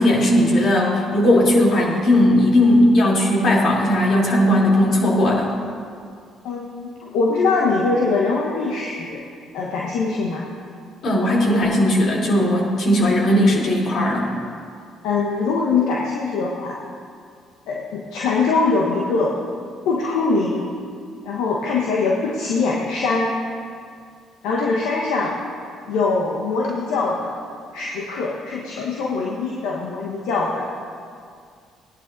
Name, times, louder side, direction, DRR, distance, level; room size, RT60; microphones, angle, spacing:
voice 1, 0.0-5.5 11.0-14.3, left 1 dB, 55° left, -4 dB, 3.3 m, -17 dB
voice 2, 6.4-9.2 9.5-10.5 15.0-16.8 17.7-19.3 19.8-20.6 21.2-23.3 24.4-25.4 25.9-27.3 27.7-30.7, left 4 dB, 70° left, -3 dB, 1.2 m, -22 dB
17.5 x 11.0 x 2.7 m, 2.2 s
hypercardioid pair, 55°, 0 cm